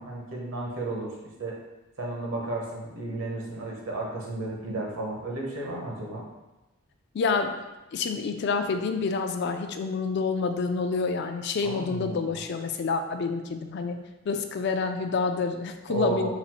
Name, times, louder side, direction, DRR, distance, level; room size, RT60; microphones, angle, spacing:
voice 1, 0.0-1.6 2.0-6.2 11.6-12.4 15.9-16.3, right 2 dB, 70° right, -2 dB, 1.0 m, -33 dB
voice 2, 7.1-7.6 7.9-16.3, left 4 dB, 50° left, 6 dB, 0.3 m, -28 dB
4.0 x 2.4 x 4.3 m, 1.0 s
head